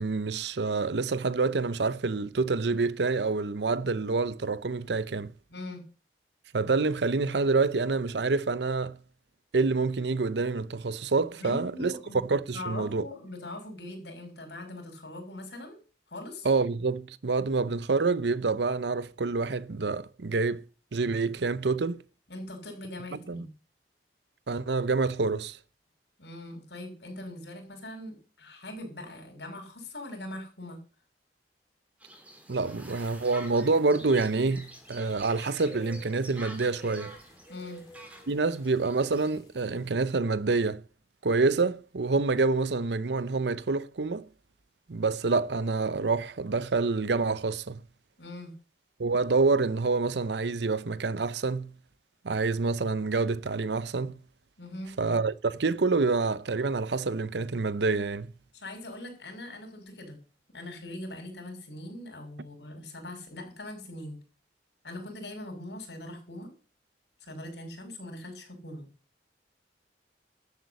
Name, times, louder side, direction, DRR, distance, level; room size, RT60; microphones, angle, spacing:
voice 1, 0.0-5.3 6.5-9.0 9.5-11.9 12.2-13.0 16.4-20.6 20.9-22.0 23.3-23.5 24.5-25.6 32.5-37.1 38.3-40.8 41.2-44.3 44.9-47.8 49.0-51.7 52.2-54.2 55.0-58.3, right 3 dB, 75° right, 0.7 m, -27 dB
voice 2, 5.5-5.9 11.3-12.2 12.5-15.8 16.1-16.5 22.3-23.5 26.2-30.8 37.5-37.9 48.2-48.5 54.6-54.9 58.5-60.2 60.5-64.2 64.8-66.5 67.2-68.9, left 1 dB, 75° left, 6.3 m, -41 dB
sound 1, 32.0-39.4, equal, 10° right, 3.4 m, -48 dB
sound 2, 33.4-40.0, left 1 dB, 20° left, 4.5 m, -52 dB
13.0 x 8.4 x 8.2 m
head